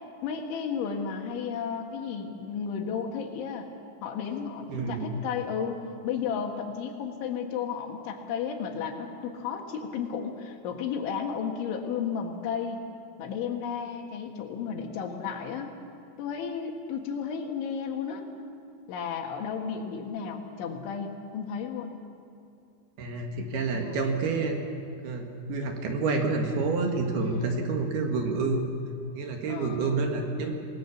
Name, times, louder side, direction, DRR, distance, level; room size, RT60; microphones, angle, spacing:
voice 1, 0.2-3.7 4.0-12.9 13.2-15.7 16.2-18.2 18.9-22.0 23.7-24.0 27.2-27.5 29.5-30.1, left 6 dB, 80° left, 4 dB, 4.1 m, -33 dB
voice 2, 4.7-5.1 23.0-24.6 25.0-28.8 29.1-30.5, right 3 dB, 65° right, 3 dB, 3.5 m, -28 dB
27.0 x 19.5 x 7.2 m, 2.6 s
omnidirectional pair, 5.4 m